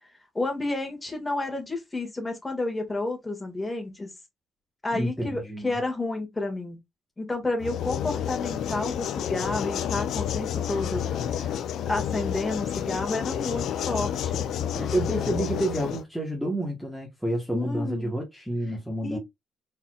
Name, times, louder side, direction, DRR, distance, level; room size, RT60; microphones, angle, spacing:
voice 1, 0.0-4.1 4.8-6.8 7.2-11.0 11.4-11.5 11.9-14.4 17.5-18.1 19.0-19.2, left 2 dB, 20° left, 1.8 m, -30 dB
voice 2, 4.9-5.8 14.7-19.2, right 1 dB, ahead, 1.2 m, -29 dB
sound 1, 7.6-16.0, left 9 dB, 75° left, 0.5 m, -30 dB
4.1 x 4.0 x 2.4 m
cardioid pair, 90°, 0 cm